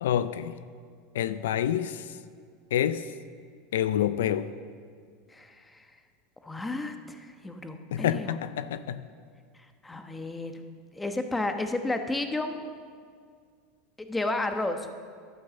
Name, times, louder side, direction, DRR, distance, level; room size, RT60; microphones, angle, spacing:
voice 1, 0.0-0.6 1.1-2.2 2.7-3.1 3.7-4.5 7.9-9.1, left 10 dB, 85° left, 14 dB, 0.4 m, -28 dB
voice 2, 5.3-5.9 6.4-8.4 9.5-10.6 10.9-12.6 14.0-14.9, left 2 dB, 10° left, 7 dB, 1.1 m, -32 dB
12.0 x 9.3 x 6.9 m, 2.1 s
supercardioid pair, 110°, 0 cm